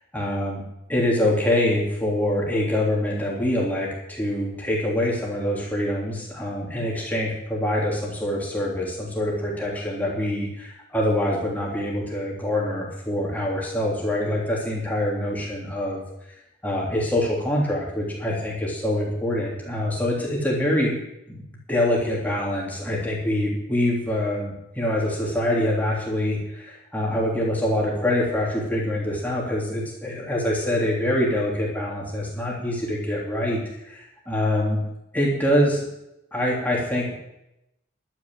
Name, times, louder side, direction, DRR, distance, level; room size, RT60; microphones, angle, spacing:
voice 1, 0.1-0.6 0.9-16.0 16.6-21.0 21.3-33.6 33.9-34.8 35.1-35.8 36.3-37.1, left 1 dB, 10° left, -4 dB, 3.3 m, -25 dB
12.0 x 9.7 x 7.8 m, 0.86 s
head